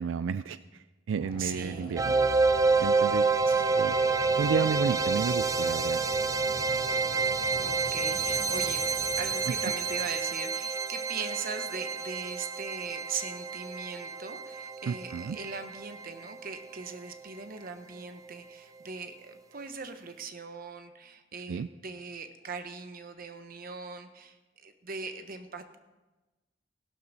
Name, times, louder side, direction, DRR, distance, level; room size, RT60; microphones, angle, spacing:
voice 1, 0.0-2.1 2.8-3.3 3.8-4.0 4.4-6.0 14.9-15.4 21.5-21.7, right 6 dB, 90° right, 14 dB, 0.4 m, -32 dB
sound 1, 1.2-10.2, left 1 dB, 35° left, 3.8 m, -43 dB
voice 2, 1.4-2.1 3.2-3.6 7.6-25.8, right 5 dB, 50° right, 8 dB, 1.0 m, -40 dB
sound 2, 2.0-16.9, right 4 dB, 20° right, 0.5 m, -28 dB
16.0 x 12.0 x 4.1 m, 1.1 s
head